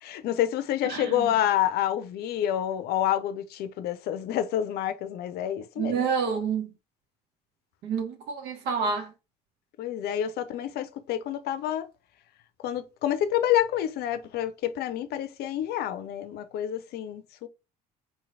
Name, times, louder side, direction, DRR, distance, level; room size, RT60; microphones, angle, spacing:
voice 1, 0.0-6.0 9.8-11.9 12.6-17.5, left 11 dB, 55° left, 0.6 m, -28 dB
voice 2, 0.9-1.3 5.8-6.7 7.8-9.1, right 6 dB, 65° right, 0.8 m, -28 dB
3.8 x 3.1 x 2.5 m
hypercardioid pair, 60°, 19 cm